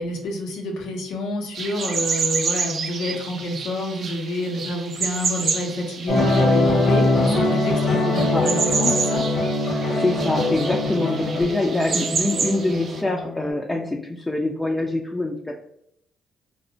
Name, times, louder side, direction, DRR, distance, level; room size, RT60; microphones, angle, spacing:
voice 1, 0.0-9.2, left 1 dB, 85° left, 1 dB, 0.6 m, -28 dB
sound 1, 1.5-13.0, right 5 dB, 55° right, 0.4 m, -29 dB
sound 2, 6.1-13.5, left 2 dB, 55° left, 0.9 m, -22 dB
voice 2, 8.0-8.5 9.9-15.6, left 2 dB, 20° left, 0 dB, 0.3 m, -25 dB
2.8 x 2.1 x 2.6 m, 0.72 s
cardioid pair, 90°, 0 cm